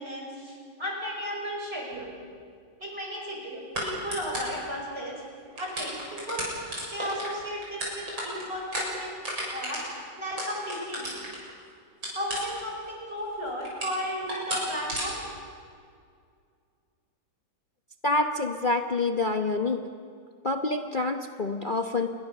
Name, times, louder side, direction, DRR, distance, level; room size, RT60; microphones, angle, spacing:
voice 1, 0.0-2.1 2.8-5.2 5.6-6.5 6.9-9.2 9.5-9.8 10.2-11.2 12.1-15.2, equal, 30° right, -1 dB, 6.1 m, -34 dB
sound 1, 1.9-2.1 3.7-4.6 5.1-5.2 5.5-11.5 12.0-12.8 13.2-14.0 14.3-14.6 14.9-15.1, right 1 dB, 75° right, 7.6 m, -33 dB
voice 2, 18.0-19.8 20.4-22.1, left 3 dB, 35° left, 4 dB, 0.9 m, -27 dB
27.5 x 22.0 x 6.7 m, 2.2 s
omnidirectional pair, 2.1 m